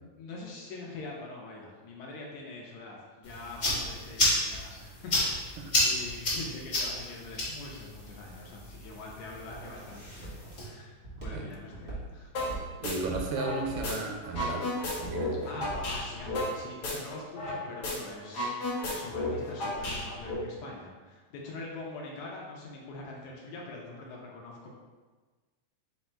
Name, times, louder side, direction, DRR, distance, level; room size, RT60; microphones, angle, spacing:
voice 1, 0.2-5.5 5.8-10.9 11.2-12.3 15.5-24.7, left 2 dB, 75° left, -2 dB, 1.9 m, -44 dB
sound 1, 3.2-10.6, left 1 dB, 40° left, 0.9 m, -32 dB
Walk footsteps, 8.5-16.4, right 2 dB, 50° right, 0.7 m, -42 dB
sound 2, 12.3-12.5 12.8-13.9 14.2-17.6 17.8-17.9 18.2-20.3, left 1 dB, 60° left, 1.7 m, -33 dB
voice 2, 12.8-14.7 15.0-15.6, right 3 dB, 90° right, 2 dB, 2.2 m, -34 dB
5.1 x 2.3 x 4.2 m, 1.3 s
omnidirectional pair, 3.6 m